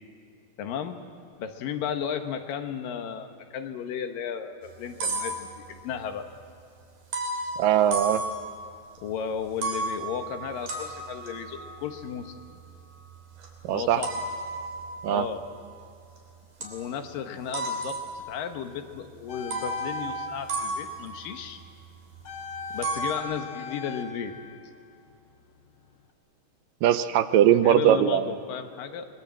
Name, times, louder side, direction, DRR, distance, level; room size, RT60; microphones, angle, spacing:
voice 1, 0.6-1.0 1.4-6.3 9.0-12.3 13.7-14.2 15.1-15.4 16.6-21.6 22.7-24.3 27.6-29.1, left 8 dB, 80° left, 6 dB, 3.0 m, -34 dB
sound 1, 4.6-6.0 7.1-9.0 9.4-16.2 16.6-17.1 17.5-18.6 19.0-19.1 19.5-22.3 22.5-23.2, right 2 dB, 60° right, 4.5 m, -34 dB
voice 2, 7.6-8.2 13.6-14.0 15.0-15.3 26.8-28.4, right 11 dB, 80° right, 11 dB, 2.4 m, -21 dB
sound 2, 19.3-21.3 22.2-25.3 25.7-25.8, left 4 dB, 45° left, 1.5 m, -40 dB
25.0 x 22.5 x 7.6 m, 2.6 s
omnidirectional pair, 4.0 m